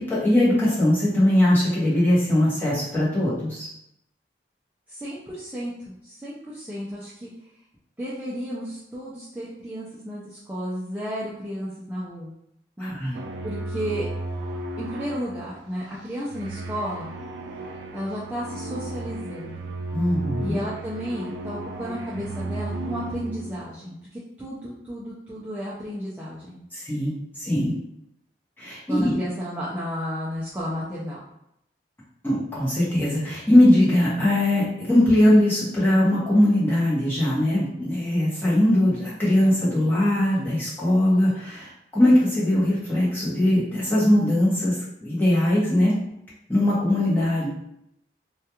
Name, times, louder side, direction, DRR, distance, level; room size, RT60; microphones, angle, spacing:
voice 1, 0.0-3.7 12.8-13.1 19.9-20.6 26.7-27.7 28.6-29.1 32.2-46.0 46.5-47.5, left 1 dB, 10° left, -8 dB, 0.8 m, -21 dB
voice 2, 4.9-7.3 8.0-12.3 12.8-14.1 14.8-17.1 17.9-19.6 20.4-26.6 28.9-31.2, equal, 10° right, -9 dB, 0.3 m, -33 dB
sound 1, 13.1-23.7, right 2 dB, 90° right, 0.3 m, -34 dB
2.3 x 2.2 x 2.8 m, 0.78 s
head